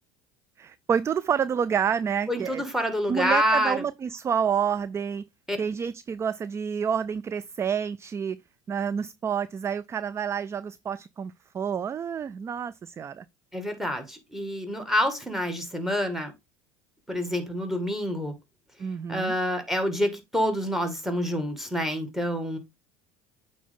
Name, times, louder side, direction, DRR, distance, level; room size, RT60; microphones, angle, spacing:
voice 1, 0.6-2.6 3.1-5.2 5.6-8.4 8.7-13.2 18.8-19.3, right 7 dB, 25° right, 0.3 m, -28 dB
voice 2, 2.3-3.8 5.5-5.6 13.5-16.3 17.1-18.3 19.1-22.6, equal, 5° right, 2.0 m, -27 dB
8.4 x 3.9 x 3.7 m
supercardioid pair, 95°, 11 cm